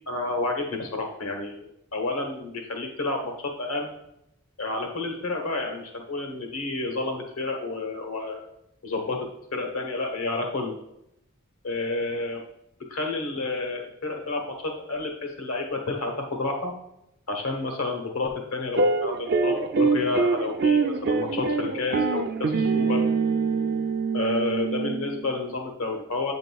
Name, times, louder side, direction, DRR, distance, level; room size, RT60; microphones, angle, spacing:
voice 1, 0.1-3.3 3.6-3.9 4.6-8.4 8.8-9.2 9.5-10.8 11.6-12.4 12.9-16.7 17.3-23.0 24.1-26.3, left 2 dB, 85° left, 2 dB, 1.1 m, -30 dB
sound 1, 18.7-25.3, right 4 dB, 50° right, 0.4 m, -24 dB
8.2 x 5.1 x 2.3 m, 0.82 s
head